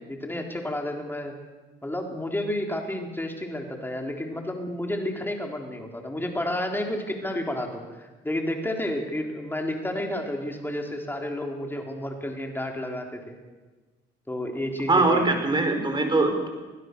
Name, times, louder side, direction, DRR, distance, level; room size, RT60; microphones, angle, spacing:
voice 1, 0.1-1.3 1.8-13.3 14.3-15.3, left 1 dB, 10° left, 2 dB, 3.9 m, -31 dB
voice 2, 14.9-16.5, right 2 dB, 25° right, 5 dB, 4.7 m, -22 dB
25.0 x 15.5 x 6.9 m, 1.2 s
cardioid pair, 90°, 20 cm